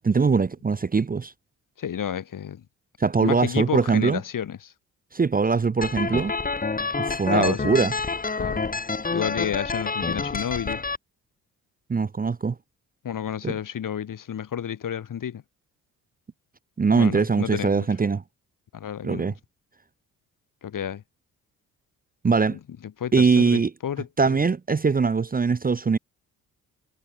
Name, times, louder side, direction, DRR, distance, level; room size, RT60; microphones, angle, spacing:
voice 1, 0.0-1.3 3.0-4.2 5.1-6.3 7.0-7.9 11.9-12.5 13.4-13.5 16.8-18.2 19.0-19.3 22.2-22.6 23.1-23.7 24.2-26.0, right 5 dB, 25° right, 0.8 m, -22 dB
voice 2, 1.8-2.6 3.2-4.7 7.3-7.9 8.4-8.6 9.1-10.8 13.0-15.4 16.9-17.9 18.7-19.3 20.6-21.0 22.5-22.6 23.0-24.4, left 9 dB, 55° left, 2.6 m, -31 dB
sound 1, 5.8-11.0, left 4 dB, 20° left, 1.4 m, -28 dB
supercardioid pair, 55°, 38 cm